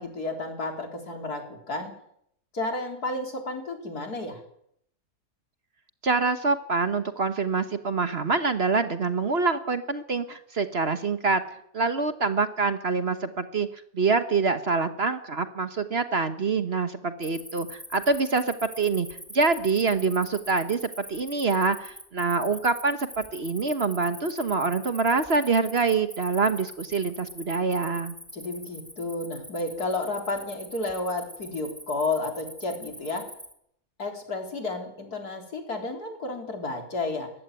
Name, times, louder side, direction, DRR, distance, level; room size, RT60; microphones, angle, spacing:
voice 1, 0.0-1.9 2.5-4.4 28.3-33.3 34.0-37.3, left 2 dB, 75° left, 4 dB, 4.1 m, -32 dB
voice 2, 6.0-11.4 11.7-13.7 13.9-19.1 19.3-20.8 21.1-28.1, right 4 dB, 45° right, 10 dB, 1.4 m, -25 dB
Cricket, 17.2-33.5, equal, ahead, 2.9 m, -43 dB
20.0 x 15.5 x 9.2 m, 0.71 s
omnidirectional pair, 1.7 m